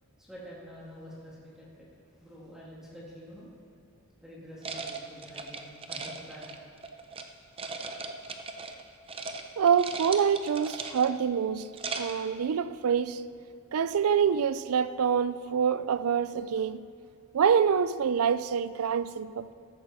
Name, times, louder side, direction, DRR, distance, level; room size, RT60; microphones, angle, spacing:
voice 1, 0.2-1.9 2.2-3.5 4.2-6.6, equal, ahead, 2.1 m, -47 dB
sound 1, 4.6-7.2 7.6-8.8 9.1-9.4 9.7-11.2 11.6-12.3, right 4 dB, 25° right, 0.6 m, -38 dB
voice 2, 9.6-13.2 13.7-16.9 17.3-19.5, right 7 dB, 75° right, 0.4 m, -26 dB
13.5 x 13.0 x 4.1 m
head